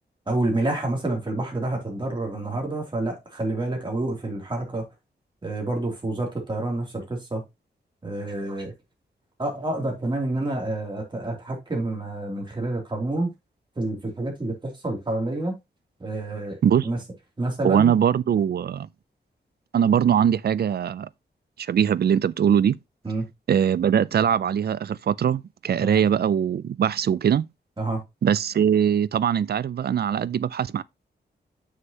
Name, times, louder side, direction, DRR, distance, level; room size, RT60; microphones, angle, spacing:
voice 1, 0.3-4.9 5.4-7.4 8.0-8.7 9.4-13.3 13.8-15.5 16.0-16.6 16.8-17.0 17.4-17.9 23.0-23.3 25.8-26.0 27.8-28.0, right 2 dB, 25° right, 3.0 m, -28 dB
voice 2, 17.6-18.9 19.7-21.1 21.6-22.8 23.5-27.5 28.2-30.8, right 8 dB, 60° right, 0.4 m, -21 dB
7.4 x 6.4 x 2.9 m
wide cardioid pair, 120°, 18 cm